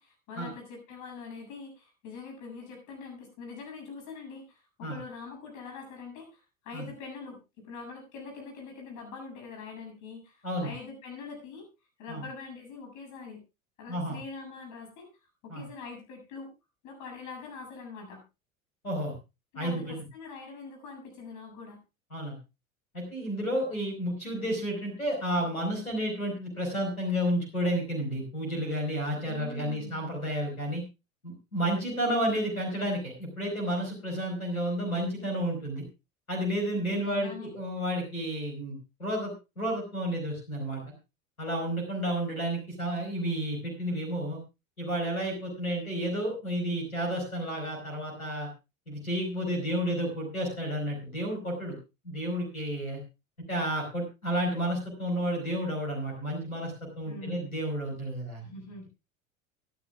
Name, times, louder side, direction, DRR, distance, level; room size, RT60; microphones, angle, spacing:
voice 1, 0.0-11.7 12.0-13.4 13.8-15.1 15.4-16.5 16.8-18.2 19.5-21.8 29.2-30.0 36.9-37.5 57.1-57.5 58.4-58.9, left 4 dB, 45° left, 3 dB, 7.2 m, -43 dB
voice 2, 19.6-20.0 22.1-22.4 22.9-30.8 31.2-35.8 36.3-40.8 41.4-44.4 44.8-48.5 48.9-51.8 52.0-53.0 53.5-58.4, equal, 85° left, 2 dB, 4.7 m, -31 dB
24.0 x 10.5 x 2.4 m, 0.27 s
figure-of-eight pair, 75°, 42 cm